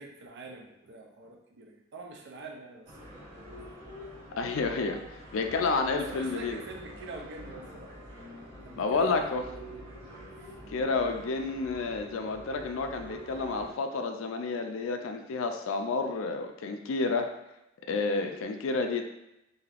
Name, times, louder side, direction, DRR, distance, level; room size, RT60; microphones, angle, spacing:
voice 1, 0.0-4.0 4.2-4.4 6.1-7.9 8.6-9.9 10.3-10.6, right 3 dB, 60° right, 2 dB, 0.5 m, -46 dB
sound 1, 2.8-13.7, equal, 25° right, 1.0 m, -46 dB
voice 2, 4.4-6.6 8.8-9.4 10.7-17.3 17.9-19.0, left 3 dB, 75° left, 5 dB, 0.4 m, -30 dB
3.3 x 2.7 x 2.4 m, 0.87 s
head